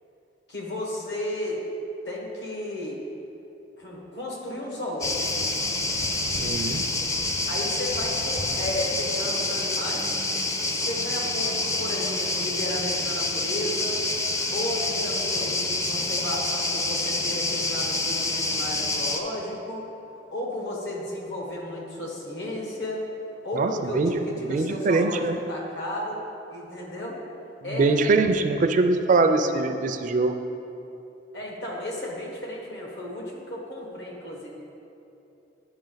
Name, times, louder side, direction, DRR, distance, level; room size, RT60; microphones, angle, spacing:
voice 1, 0.5-1.6 2.0-3.0 3.8-5.2 7.5-10.2 10.7-14.0 14.5-19.8 20.3-23.0 23.4-26.2 26.5-27.2 27.6-28.0 31.3-34.5, left 1 dB, 70° left, -2 dB, 1.5 m, -33 dB
sound 1, 5.0-19.2, left 2 dB, 20° left, 0.4 m, -27 dB
voice 2, 6.4-6.8 23.6-24.1 24.5-25.3 27.7-30.3, right 3 dB, 45° right, 7 dB, 0.4 m, -22 dB
10.5 x 4.6 x 3.9 m, 2.9 s
head